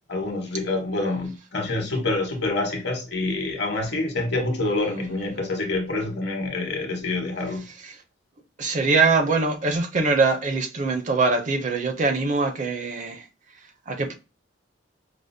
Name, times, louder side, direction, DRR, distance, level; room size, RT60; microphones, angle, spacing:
voice 1, 0.1-7.7, left 2 dB, 60° left, 1.0 m, -27 dB
voice 2, 8.6-13.2 13.9-14.1, right 3 dB, 40° right, 0.5 m, -23 dB
4.9 x 2.0 x 2.6 m
head